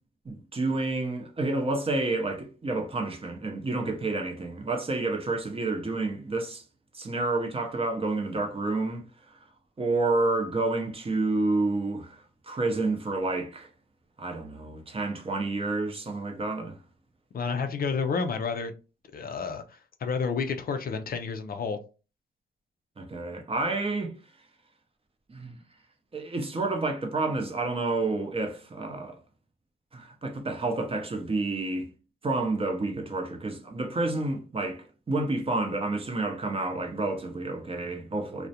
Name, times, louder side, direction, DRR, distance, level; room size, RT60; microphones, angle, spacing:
voice 1, 0.2-6.6 6.9-9.3 9.8-13.7 14.2-16.8 23.0-24.1 25.3-25.6 26.1-29.2 29.9-31.9 32.2-38.5, right 2 dB, 30° right, 0.6 m, -29 dB
voice 2, 17.3-18.7 19.1-21.8, left 5 dB, 45° left, 0.4 m, -30 dB
2.4 x 2.1 x 2.7 m
cardioid pair, 85°, 20 cm